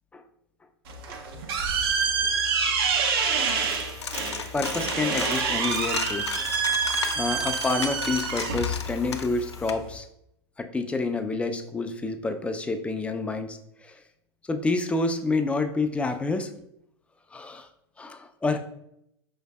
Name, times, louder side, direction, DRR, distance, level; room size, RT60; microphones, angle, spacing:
sound 1, 0.9-10.0, right 5 dB, 60° right, 0.6 m, -27 dB
Coin (dropping), 3.5-9.7, left 6 dB, 90° left, 0.4 m, -35 dB
voice 1, 4.5-6.3 7.1-10.1 10.6-14.0 14.5-16.5 17.3-17.7 18.0-18.6, left 3 dB, 10° left, 6 dB, 0.4 m, -28 dB
5.3 x 3.1 x 2.3 m, 0.77 s
hypercardioid pair, 95°, 14 cm